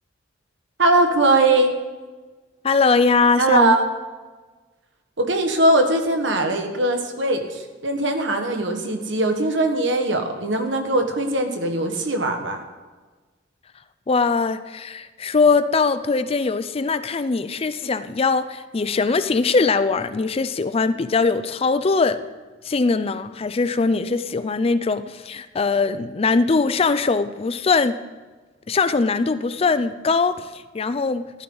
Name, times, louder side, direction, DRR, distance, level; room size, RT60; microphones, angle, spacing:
voice 1, 0.8-1.7 3.4-3.8 5.2-12.6, right 2 dB, 70° right, 5 dB, 1.6 m, -20 dB
voice 2, 2.6-3.8 14.1-22.2 22.6-28.0 28.7-31.4, left 4 dB, 30° left, 13 dB, 0.4 m, -21 dB
15.0 x 12.5 x 4.0 m, 1.3 s
head